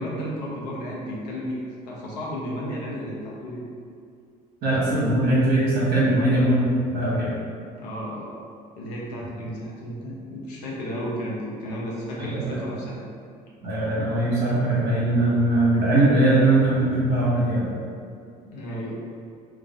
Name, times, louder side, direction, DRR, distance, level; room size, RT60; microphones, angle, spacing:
voice 1, 0.0-3.6 7.8-8.3 8.8-13.1 18.4-19.0, equal, 75° left, -4 dB, 0.6 m, -33 dB
voice 2, 4.6-7.3 12.2-12.6 13.6-17.7, right 1 dB, 50° right, -7 dB, 0.9 m, -21 dB
2.4 x 2.3 x 2.3 m, 2.2 s
hypercardioid pair, 55°, 21 cm